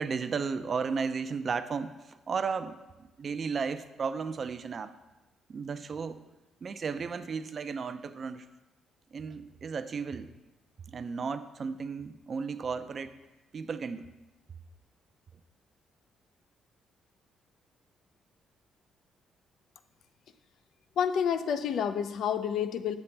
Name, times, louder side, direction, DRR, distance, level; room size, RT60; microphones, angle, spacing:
voice 1, 0.0-2.7 3.2-4.9 5.5-6.2 6.6-8.5 9.1-10.4 10.9-13.2 13.5-14.1, right 5 dB, 45° right, 11 dB, 0.4 m, -34 dB
voice 2, 21.0-23.0, left 8 dB, 70° left, 11 dB, 0.4 m, -29 dB
7.7 x 7.1 x 3.3 m, 1.1 s
cardioid pair, 90°, 0 cm